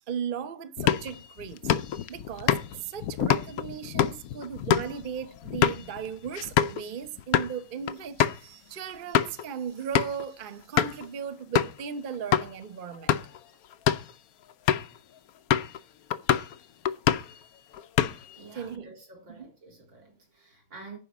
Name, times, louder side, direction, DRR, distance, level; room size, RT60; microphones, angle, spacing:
voice 1, 0.0-1.7 2.1-13.2 18.5-19.0 19.3-19.5, right 7 dB, 75° right, 0.4 m, -37 dB
sound 1, 0.8-6.8 7.2-7.5 7.9-8.0 8.2-8.4 8.9-9.4 9.9-10.2 10.8-11.1 11.6-11.8 12.3-12.5 12.9-13.4 13.7-14.1 14.7-15.0 15.5-15.8 16.1-16.5 16.9-17.4 17.7-18.4, left 10 dB, 90° left, 0.7 m, -26 dB
voice 2, 18.4-21.0, right 3 dB, 60° right, 4.5 m, -48 dB
10.5 x 5.2 x 7.1 m
omnidirectional pair, 2.3 m